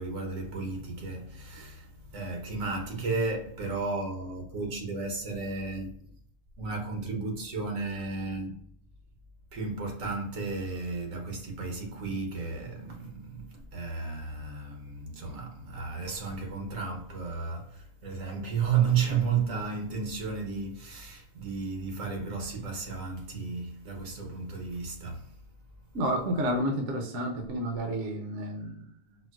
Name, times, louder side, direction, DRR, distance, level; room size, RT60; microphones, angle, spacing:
voice 1, 0.0-5.9 6.6-8.6 9.5-25.3, right 5 dB, 85° right, 1.3 m, -33 dB
voice 2, 25.9-28.9, right 1 dB, 70° right, 0.9 m, -30 dB
4.3 x 2.0 x 2.3 m
omnidirectional pair, 1.3 m